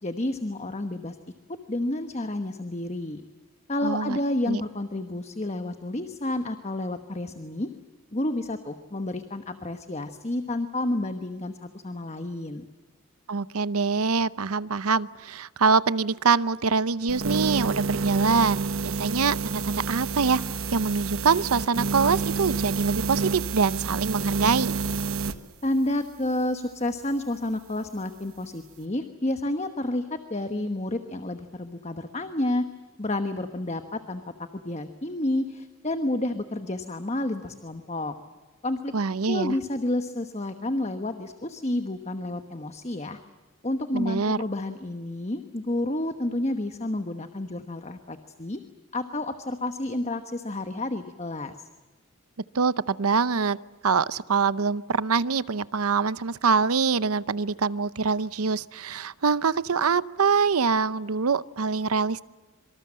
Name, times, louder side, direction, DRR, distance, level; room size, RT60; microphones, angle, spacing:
voice 1, 0.0-1.2 1.5-3.2 3.7-7.7 8.1-12.7 25.6-32.7 33.0-38.1 38.6-39.0 39.3-43.2 43.6-48.6 48.9-51.7, left 1 dB, 30° left, 8 dB, 1.2 m, -30 dB
voice 2, 3.8-4.2 4.5-4.6 13.3-20.4 20.7-24.7 38.9-39.6 43.9-44.4 52.5-53.6 53.8-62.2, right 5 dB, 85° right, 17 dB, 0.7 m, -24 dB
sound 1, 17.1-25.4, right 4 dB, 70° right, 1.4 m, -29 dB
26.0 x 25.0 x 7.6 m, 1.3 s
head